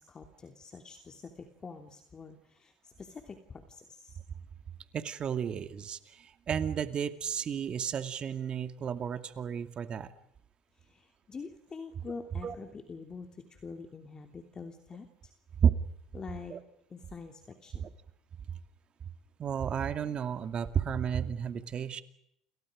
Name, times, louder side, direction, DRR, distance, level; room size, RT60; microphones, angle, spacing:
voice 1, 0.0-4.2 10.7-15.3 16.1-16.6 16.9-17.9, left 4 dB, 30° left, 5 dB, 3.1 m, -46 dB
voice 2, 4.9-10.1 12.4-12.5 15.6-15.7 16.5-16.6 17.8-17.9 19.4-22.0, right 8 dB, 40° right, 9 dB, 2.4 m, -32 dB
29.5 x 28.5 x 5.2 m, 0.77 s
hypercardioid pair, 80°, 3 cm